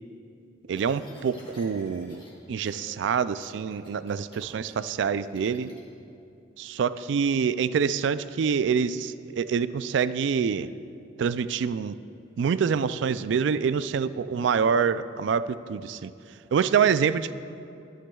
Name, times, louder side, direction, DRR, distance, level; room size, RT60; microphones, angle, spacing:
sound 1, 0.7-2.3 2.6-2.9 3.2-5.8, equal, 25° left, 2.0 m, -50 dB
voice 1, 0.7-2.2 2.5-5.7 6.6-10.7 11.2-12.0 12.4-16.1 16.5-17.3, right 6 dB, 70° right, 15 dB, 0.3 m, -26 dB
21.5 x 9.1 x 2.3 m, 2.7 s
head